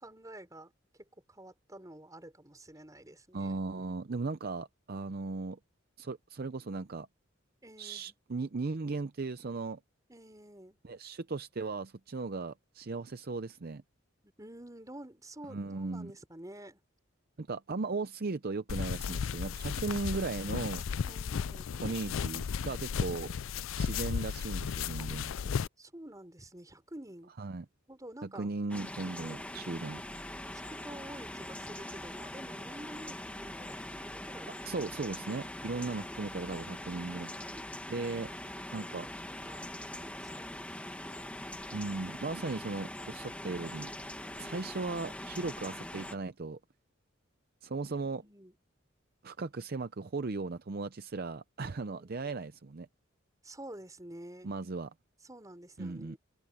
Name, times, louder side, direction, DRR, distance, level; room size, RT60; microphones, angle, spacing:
voice 1, 0.0-0.7 1.3-3.6 7.6-8.1 10.1-10.8 14.4-16.8 21.1-21.7 23.0-23.5 25.0-25.1 25.8-27.3 27.9-28.5 29.2-29.4 30.5-34.6 37.4-37.7 38.2-38.4 38.7-38.8 39.5-39.6 39.9-40.8 44.2-44.7 47.9-48.6 51.8-52.4 53.4-54.5 55.2-56.2, right 1 dB, 15° right, 5.2 m, -49 dB
voice 2, 3.3-5.6 6.0-7.1 7.8-9.8 10.8-13.8 15.5-16.1 17.4-20.8 21.8-23.3 23.8-25.5 27.4-27.7 28.2-30.0 34.6-37.5 37.9-38.3 38.7-39.1 41.7-43.9 44.4-46.6 47.6-48.2 49.2-52.9 54.4-54.9 55.8-56.2, right 3 dB, 45° right, 0.6 m, -37 dB
sound 1, 18.7-25.7, left 6 dB, 70° left, 0.4 m, -35 dB
sound 2, 28.7-46.1, left 1 dB, 5° left, 1.7 m, -42 dB
head